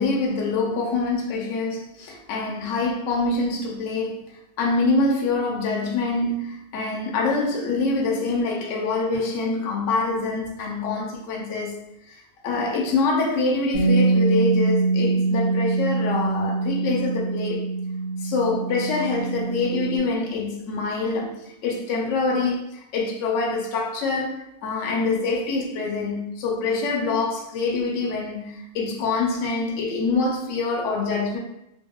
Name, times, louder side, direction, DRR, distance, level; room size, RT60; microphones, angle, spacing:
voice 1, 0.0-11.8 12.1-17.7 18.2-31.4, left 3 dB, 65° left, 0.9 m, -25 dB
Bass guitar, 13.7-20.0, right 3 dB, 40° left, 0.5 m, -23 dB
2.7 x 2.7 x 2.2 m
omnidirectional pair, 1.5 m